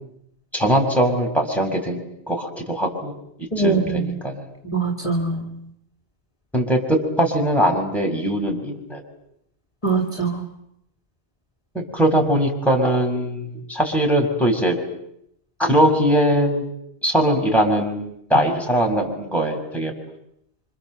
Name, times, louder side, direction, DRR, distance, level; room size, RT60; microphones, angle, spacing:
voice 1, 0.5-2.0 2.3-3.1 3.6-4.4 6.5-9.0 11.7-14.8 15.6-16.6 17.0-19.9, equal, ahead, 1 dB, 6.5 m, -21 dB
voice 2, 3.5-4.2 4.7-5.4 9.8-10.4, right 3 dB, 30° left, 3 dB, 2.8 m, -22 dB
29.0 x 26.5 x 7.9 m, 0.76 s
omnidirectional pair, 1.1 m